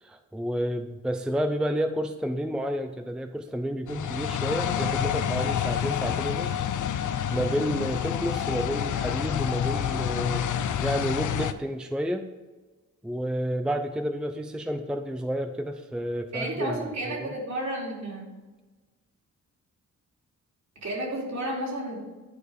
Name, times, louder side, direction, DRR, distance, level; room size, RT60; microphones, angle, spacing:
voice 1, 0.0-6.6 7.0-12.3 13.0-17.3, equal, 5° right, 7 dB, 0.6 m, -30 dB
sound 1, 3.9-11.5, left 9 dB, 75° left, 0.6 m, -28 dB
voice 2, 16.3-18.2 20.8-22.0, right 1 dB, 60° right, -2 dB, 2.8 m, -32 dB
11.0 x 4.6 x 5.1 m, 1.2 s
cardioid pair, 70°, 31 cm